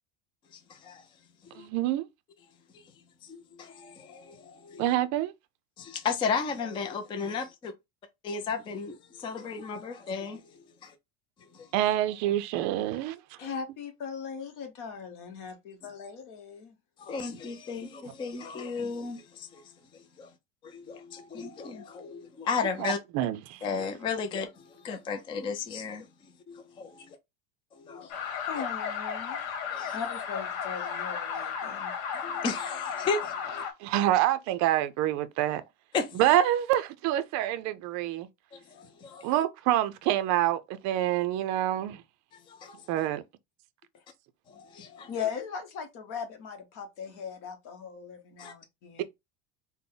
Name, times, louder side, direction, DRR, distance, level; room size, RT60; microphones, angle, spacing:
voice 1, 0.5-1.1 1.4-1.7 3.2-4.9 5.8-7.7 8.2-10.9 11.5-11.7 13.4-13.5 17.0-20.3 20.6-23.0 23.6-26.1 26.5-27.2 27.7-28.1 29.7-30.0 32.2-33.6 35.9-36.2 38.5-39.3 42.5-42.8 44.5-45.1 48.4-48.5, left 5 dB, 15° left, 0.3 m, -35 dB
voice 2, 1.5-2.1 4.8-5.3 11.7-13.4 22.8-23.6 33.8-35.6 36.1-38.3 39.2-42.0 42.9-43.2, right 12 dB, 45° right, 0.5 m, -27 dB
voice 3, 13.4-16.7 28.0-28.1 28.5-29.5 29.9-31.9 45.1-49.0, left 6 dB, 50° left, 1.0 m, -39 dB
sound 1, 28.1-33.7, left 7 dB, 70° left, 1.2 m, -34 dB
3.8 x 2.1 x 3.7 m
supercardioid pair, 145°, 41 cm